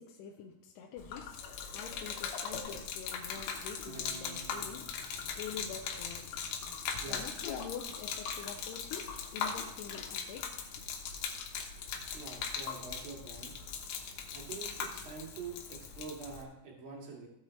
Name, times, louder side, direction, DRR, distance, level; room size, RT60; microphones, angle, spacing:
voice 1, 0.0-10.9, left 7 dB, 90° left, 2.8 m, -46 dB
Gurgling / Liquid, 1.0-16.4, left 6 dB, 70° left, 2.6 m, -40 dB
Guitar, 3.9-7.1, right 5 dB, 85° right, 1.6 m, -54 dB
voice 2, 12.1-13.5 14.3-17.3, right 4 dB, 40° right, 2.1 m, -45 dB
15.5 x 5.7 x 4.4 m
omnidirectional pair, 4.7 m